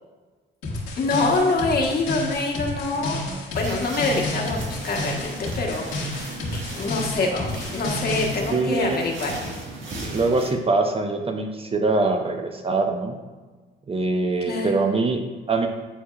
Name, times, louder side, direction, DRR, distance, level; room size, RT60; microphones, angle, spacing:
sound 1, 0.6-8.3, left 2 dB, 80° left, 1.9 m, -31 dB
voice 1, 1.0-3.2 3.5-9.4 14.5-14.7, left 3 dB, 50° left, -1 dB, 1.4 m, -25 dB
voice 2, 3.0-3.4 8.5-9.0 10.1-13.2 13.9-15.7, right 3 dB, 30° right, 5 dB, 0.6 m, -24 dB
sound 2, 3.6-10.5, right 2 dB, 70° right, 1.7 m, -36 dB
9.7 x 4.6 x 2.4 m, 1.4 s
cardioid pair, 90°, 20 cm